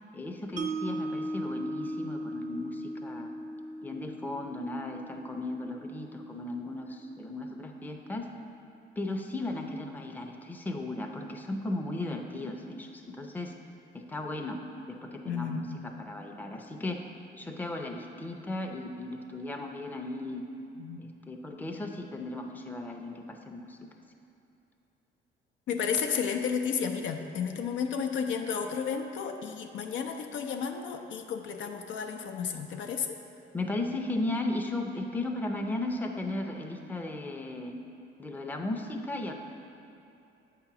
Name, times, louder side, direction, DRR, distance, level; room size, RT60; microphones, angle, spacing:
voice 1, 0.1-3.3 3.8-8.3 9.0-13.5 13.9-14.6 14.9-17.0 17.3-20.5 21.0-23.8 33.5-37.8 38.2-39.3, left 2 dB, 10° left, 2 dB, 0.5 m, -36 dB
Mallet percussion, 0.6-6.7, right 1 dB, 40° right, 0.4 m, -38 dB
voice 2, 15.3-15.8 20.8-21.0 25.7-33.2, left 6 dB, 75° left, 4 dB, 0.5 m, -32 dB
7.9 x 2.9 x 5.9 m, 2.8 s
cardioid pair, 90°, 20 cm